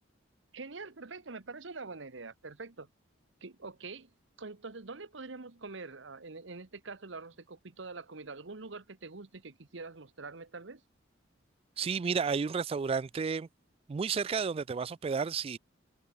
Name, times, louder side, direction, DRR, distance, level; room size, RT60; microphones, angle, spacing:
voice 1, 0.5-2.9 3.4-4.1 4.4-10.8, right 3 dB, 65° right, 1.2 m, -45 dB
voice 2, 11.8-13.5 13.9-15.6, right 5 dB, 30° right, 0.3 m, -31 dB
head